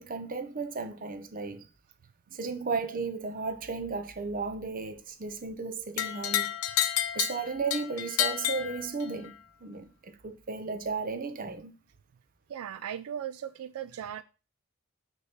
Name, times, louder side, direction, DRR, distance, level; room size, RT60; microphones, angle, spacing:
voice 1, 0.0-1.6 2.3-6.5 7.1-9.4 9.6-11.7, right 4 dB, 40° right, 0.7 m, -34 dB
sound 1, 6.0-9.3, left 11 dB, 90° left, 0.6 m, -30 dB
voice 2, 12.5-14.2, right 9 dB, 80° right, 0.3 m, -38 dB
6.3 x 3.1 x 5.6 m
head